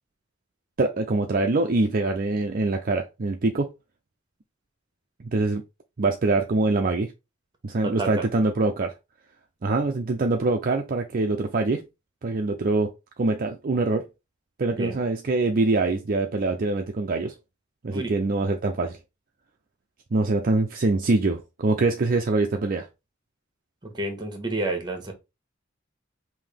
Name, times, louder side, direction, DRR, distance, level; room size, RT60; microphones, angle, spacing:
voice 1, 0.8-3.7 5.3-5.6 6.0-7.1 7.6-8.9 9.6-11.8 12.2-12.9 13.2-14.0 14.6-17.3 17.8-19.0 20.1-22.9, right 3 dB, 45° right, 0.5 m, -24 dB
voice 2, 7.8-8.3 14.8-15.0 17.9-18.1 23.8-25.1, right 2 dB, 20° right, 1.3 m, -30 dB
5.5 x 2.8 x 3.4 m
head